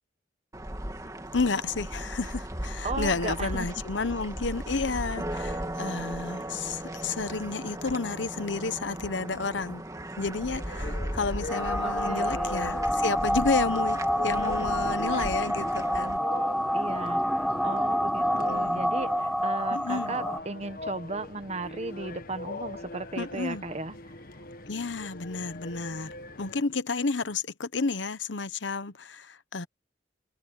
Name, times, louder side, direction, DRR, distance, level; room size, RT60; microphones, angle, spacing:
sound 1, 0.5-16.2, right 1 dB, 20° right, 2.4 m, -37 dB
voice 1, 1.3-9.8 10.2-16.2 18.3-18.8 19.7-20.2 23.2-23.6 24.7-29.7, left 4 dB, 85° left, 1.0 m, -31 dB
voice 2, 2.8-3.7 11.8-12.5 16.7-24.1, right 3 dB, 35° right, 1.1 m, -36 dB
sound 2, 10.5-26.6, left 2 dB, 50° left, 1.2 m, -42 dB
sound 3, 11.5-20.4, equal, ahead, 0.7 m, -28 dB
head